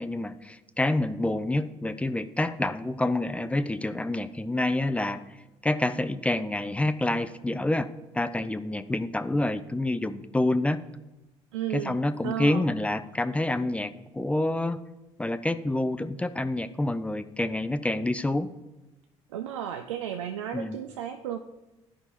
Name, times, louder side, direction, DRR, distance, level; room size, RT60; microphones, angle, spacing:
voice 1, 0.0-5.2 5.6-7.9 8.1-10.8 11.7-14.8 15.2-18.5 20.5-20.8, left 1 dB, 10° left, 12 dB, 0.4 m, -27 dB
voice 2, 11.5-12.0 12.2-12.6 19.3-21.4, right 10 dB, 75° right, 7 dB, 0.4 m, -33 dB
12.5 x 5.5 x 2.9 m, 1.0 s
figure-of-eight pair, 55°, 16 cm